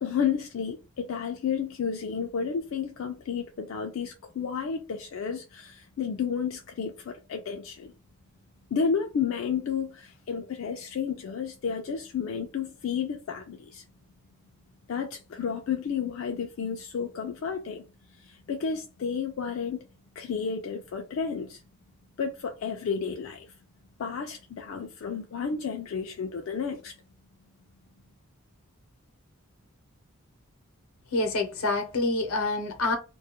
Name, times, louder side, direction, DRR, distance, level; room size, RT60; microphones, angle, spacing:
voice 1, 0.0-7.9 8.7-13.8 14.9-17.8 18.2-19.8 20.2-21.6 22.2-23.5 24.0-27.0, left 6 dB, 65° left, 0.3 m, -31 dB
voice 2, 31.1-33.0, left 2 dB, 90° left, 0.7 m, -27 dB
2.2 x 2.0 x 2.8 m
head